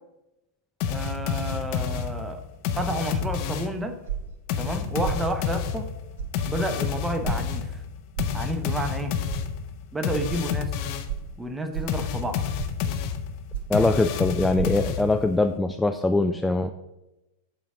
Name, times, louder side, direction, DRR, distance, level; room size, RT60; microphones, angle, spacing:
sound 1, 0.8-3.9 4.5-11.2 11.9-15.4, left 7 dB, 45° left, 0.6 m, -29 dB
voice 1, 0.9-2.4 2.7-4.0 4.6-5.9 6.5-7.8 8.3-9.1 9.9-10.7 11.4-12.4 13.7-13.9, right 1 dB, 10° right, 6 dB, 0.8 m, -30 dB
sound 2, 4.1-4.4 5.0-5.3 6.2-6.3 7.2-7.4 8.1-8.4 9.3-9.4 10.3-10.4 11.1-11.3 11.7-12.0 12.6-12.8 13.5-13.8 14.5-14.7, right 9 dB, 60° right, 0.9 m, -32 dB
voice 2, 13.7-16.7, left 2 dB, 5° left, 7 dB, 0.3 m, -22 dB
7.6 x 4.1 x 5.0 m, 0.96 s
figure-of-eight pair, 90°, 0 cm